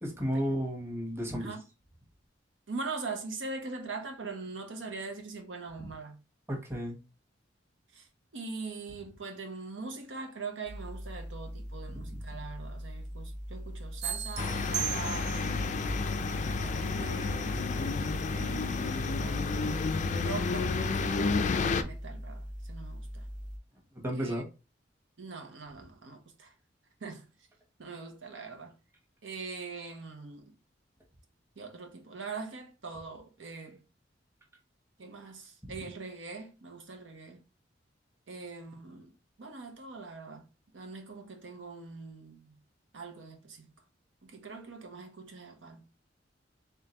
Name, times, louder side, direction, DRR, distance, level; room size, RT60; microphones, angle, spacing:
voice 1, 0.0-1.5 6.5-7.0 11.9-12.0 24.0-24.4, equal, 15° right, 1.0 m, -32 dB
voice 2, 2.7-6.2 7.9-8.1 8.3-15.7 16.5-17.8 18.2-19.7 20.1-23.3 24.1-24.4 25.2-26.5 27.0-27.3 27.8-28.7 29.2-30.5 31.6-33.8 35.0-37.4 38.3-39.1 39.4-40.4 40.7-42.5 42.9-43.7 44.2-45.8, right 4 dB, 85° right, 0.8 m, -42 dB
sound 1, 10.6-23.6, equal, 45° right, 0.8 m, -41 dB
sound 2, 14.0-15.7, right 11 dB, 60° right, 0.4 m, -36 dB
sound 3, 14.4-21.8, left 4 dB, 40° left, 0.4 m, -31 dB
3.6 x 3.4 x 2.8 m
head